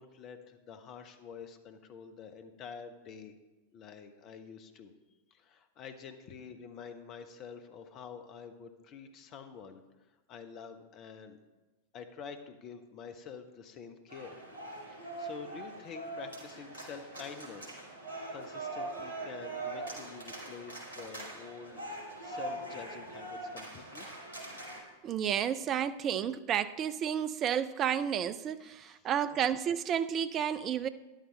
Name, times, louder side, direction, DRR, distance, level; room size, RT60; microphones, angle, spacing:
voice 1, 0.0-3.3 3.7-4.9 5.3-9.8 10.3-11.4 11.9-14.4 14.9-17.8 18.3-21.8 22.2-24.1 28.6-29.1, left 6 dB, 35° left, 8 dB, 1.1 m, -47 dB
sound 1, 14.1-24.8, right 2 dB, 75° left, 3.4 m, -42 dB
voice 2, 25.0-30.9, right 9 dB, 30° right, 13 dB, 0.5 m, -31 dB
13.0 x 11.0 x 3.4 m, 1.1 s
figure-of-eight pair, 90°, 0 cm